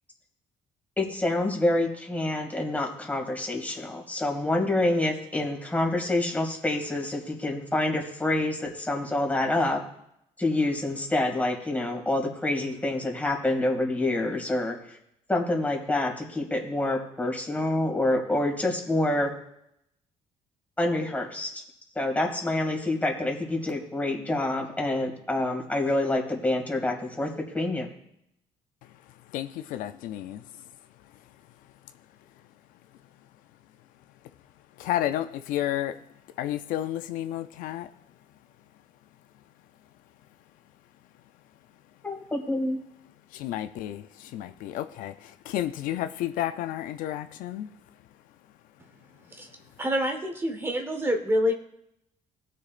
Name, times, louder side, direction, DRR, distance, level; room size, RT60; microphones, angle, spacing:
voice 1, 1.0-9.8 10.4-15.0 15.3-19.3 20.8-21.6 22.0-27.9 42.0-42.8, left 2 dB, 10° left, 1 dB, 2.4 m, -27 dB
voice 2, 29.3-30.4 34.8-36.0 36.4-37.9 43.3-47.7, left 12 dB, 85° left, 10 dB, 0.5 m, -31 dB
voice 3, 49.8-51.5, equal, 15° right, 4 dB, 1.2 m, -26 dB
18.5 x 6.6 x 2.5 m, 0.79 s
cardioid pair, 110°, 14 cm